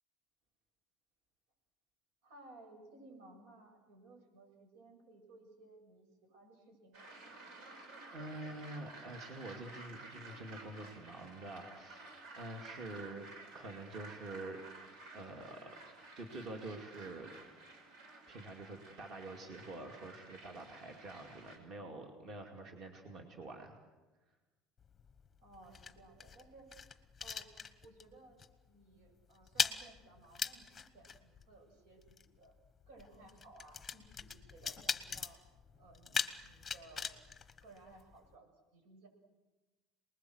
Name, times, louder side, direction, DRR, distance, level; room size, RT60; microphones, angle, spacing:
voice 1, 2.2-7.2 25.4-26.7 27.2-27.5 27.8-28.4 28.7-30.7 30.9-32.5 32.9-35.4 35.8-37.1 37.6-39.1, right 2 dB, 85° right, 4 dB, 7.7 m, -59 dB
sound 1, 6.9-21.6, right 2 dB, 55° right, 5.5 m, -53 dB
voice 2, 8.1-12.1 12.3-13.2 13.5-14.6 15.1-15.8 16.1-17.3 18.3-23.7, right 2 dB, 30° right, 3 dB, 2.4 m, -47 dB
sound 2, 24.8-28.1 28.4-28.7 28.9-38.3, left 6 dB, 15° left, 1.0 m, -41 dB
28.0 x 20.5 x 8.0 m, 1.2 s
cardioid pair, 175°, 0 cm